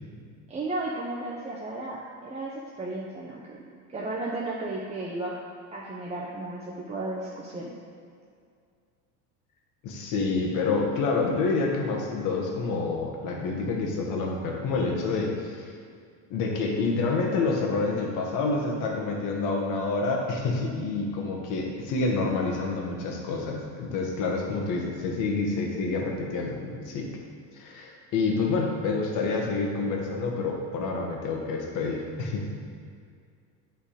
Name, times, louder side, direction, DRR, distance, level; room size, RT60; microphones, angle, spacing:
voice 1, 0.5-3.6 3.9-5.3 5.7-7.7, right 2 dB, 20° right, -5 dB, 0.8 m, -34 dB
voice 2, 9.8-15.7 16.3-27.1 27.6-32.6, left 3 dB, 60° left, 0 dB, 1.5 m, -28 dB
8.7 x 4.0 x 5.1 m, 2.2 s
cardioid pair, 125°, 35 cm